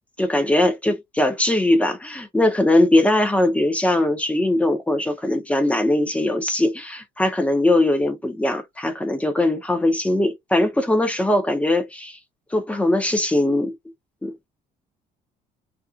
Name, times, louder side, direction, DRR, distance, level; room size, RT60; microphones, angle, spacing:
voice 1, 0.2-12.2 12.5-13.7 14.2-14.3, left 1 dB, 10° left, 0.6 m, -20 dB
2.5 x 2.3 x 2.4 m
cardioid pair, 110°, 17 cm